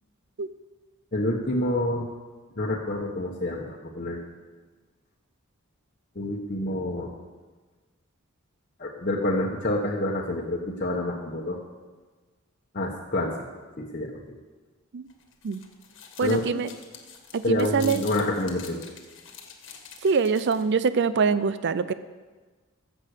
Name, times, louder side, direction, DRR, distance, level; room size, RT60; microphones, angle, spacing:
voice 1, 1.1-2.1 2.6-4.2 6.1-7.1 8.8-11.6 12.7-13.5 13.8-14.1 16.2-16.6 17.4-18.8, left 1 dB, 40° left, -4 dB, 1.3 m, -27 dB
sound 1, 15.1-20.8, left 7 dB, 60° left, 1.6 m, -46 dB
voice 2, 16.2-16.7 17.3-18.0 20.0-21.9, right 5 dB, 55° right, 14 dB, 0.4 m, -24 dB
14.5 x 7.6 x 6.7 m, 1.3 s
head